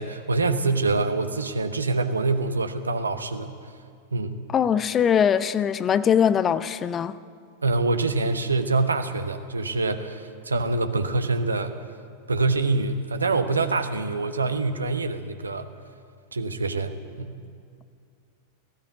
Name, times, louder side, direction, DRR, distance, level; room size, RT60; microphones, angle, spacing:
voice 1, 0.0-3.5 4.1-4.3 7.6-11.7 12.3-15.7 16.3-17.4, right 3 dB, 75° right, 1.2 m, -25 dB
voice 2, 4.5-7.2, left 8 dB, 25° left, 0.6 m, -21 dB
18.0 x 16.0 x 9.2 m
figure-of-eight pair, 90°, 0 cm